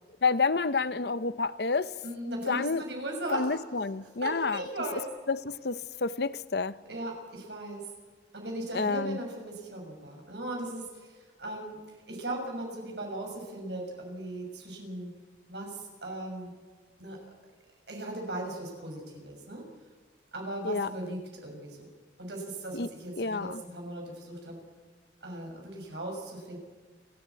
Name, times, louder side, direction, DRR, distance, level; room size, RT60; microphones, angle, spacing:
voice 1, 0.2-1.9 2.5-2.8 3.3-4.6 5.3-6.8 8.7-9.2 20.6-20.9 22.7-22.9 23.2-23.6, left 4 dB, 60° left, 0.7 m, -29 dB
voice 2, 2.0-3.6 4.0-5.1 6.9-7.9 8.3-15.2 15.5-16.6 17.0-17.2 17.9-19.7 20.3-21.9 22.2-24.6 25.2-26.6, right 1 dB, 70° right, 6.6 m, -38 dB
30.0 x 11.0 x 8.4 m
head